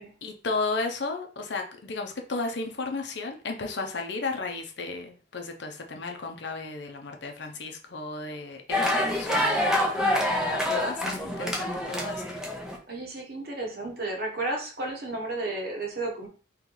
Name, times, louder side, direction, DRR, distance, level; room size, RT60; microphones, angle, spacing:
voice 1, 0.2-12.4, left 3 dB, 70° left, 3 dB, 0.7 m, -34 dB
sound 1, 8.7-12.8, left 1 dB, 5° right, 0.6 m, -26 dB
voice 2, 12.9-16.3, right 2 dB, 50° right, 1 dB, 1.1 m, -33 dB
3.1 x 3.1 x 3.8 m, 0.38 s
head